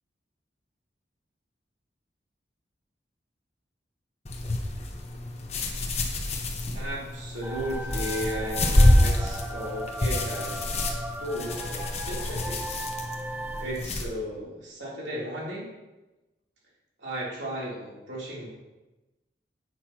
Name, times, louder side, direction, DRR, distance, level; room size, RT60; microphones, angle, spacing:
sound 1, 4.3-14.1, left 1 dB, 35° left, 1.0 m, -27 dB
voice 1, 6.7-12.8 13.6-15.7 17.0-18.5, equal, 80° right, -6 dB, 3.2 m, -35 dB
sound 2, 7.4-13.7, right 1 dB, 10° right, 0.5 m, -37 dB
10.5 x 7.9 x 3.0 m, 1.1 s
head